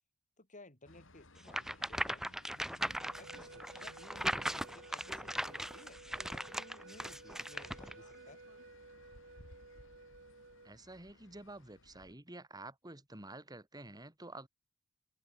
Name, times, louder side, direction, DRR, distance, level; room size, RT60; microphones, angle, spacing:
voice 1, 0.4-2.2 2.7-6.0 6.3-8.4, left 2 dB, 40° left, 5.0 m, -57 dB
sound 1, 0.8-12.1, left 2 dB, 65° left, 6.0 m, -61 dB
sound 2, 1.5-7.9, equal, ahead, 1.4 m, -39 dB
sound 3, 3.0-10.7, right 2 dB, 55° right, 6.6 m, -55 dB
voice 2, 10.6-14.5, right 2 dB, 20° right, 2.8 m, -50 dB
open air
head